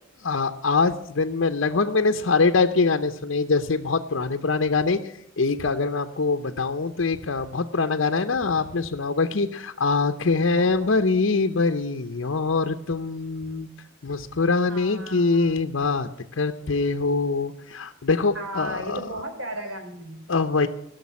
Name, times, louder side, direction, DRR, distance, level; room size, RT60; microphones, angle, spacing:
voice 1, 0.2-13.7 14.0-19.0 20.3-20.7, left 4 dB, 70° left, 6 dB, 0.7 m, -24 dB
voice 2, 10.5-10.9 14.7-15.5 18.3-20.2, right 1 dB, 85° right, 4 dB, 3.3 m, -35 dB
16.5 x 6.6 x 9.5 m, 0.77 s
head